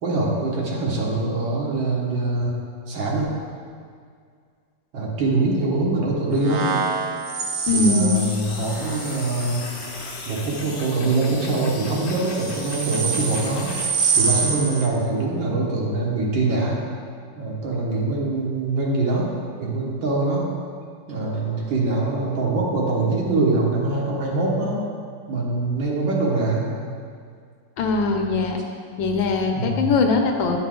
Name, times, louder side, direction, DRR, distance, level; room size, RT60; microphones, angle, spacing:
voice 1, 0.0-2.5 2.9-3.3 4.9-6.7 7.7-9.6 10.3-13.7 14.2-16.8 17.4-19.3 19.6-20.5 21.1-24.8 25.3-26.7 29.5-29.9, right 3 dB, 80° right, -3 dB, 2.0 m, -23 dB
sound 1, 6.4-10.0 12.1-14.9, right 4 dB, 55° right, 0.8 m, -26 dB
voice 2, 7.7-8.2 27.8-28.6 29.0-30.6, left 3 dB, 85° left, 3 dB, 1.5 m, -21 dB
sound 2, 8.1-13.9, left 3 dB, 70° left, 1.5 m, -37 dB
9.5 x 5.5 x 3.7 m, 2.2 s
omnidirectional pair, 2.0 m